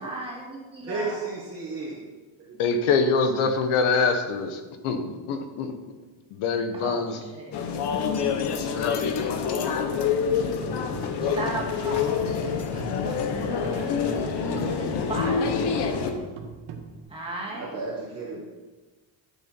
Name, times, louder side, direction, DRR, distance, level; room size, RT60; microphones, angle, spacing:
voice 1, 0.0-1.2 6.7-7.6 11.2-15.4 17.1-17.8, right 2 dB, 10° right, -4 dB, 2.4 m, -37 dB
voice 2, 0.8-1.9 2.4-2.6 17.5-18.4, right 3 dB, 30° right, -5 dB, 1.6 m, -33 dB
voice 3, 2.6-5.7 6.3-7.2 8.7-9.1, left 4 dB, 75° left, 7 dB, 1.4 m, -25 dB
sound 1, 7.5-16.1, left 6 dB, 50° left, 1.1 m, -26 dB
sound 2, 10.6-17.0, right 5 dB, 75° right, 1.5 m, -41 dB
13.0 x 7.1 x 4.5 m, 1.3 s
cardioid pair, 160°, 50 cm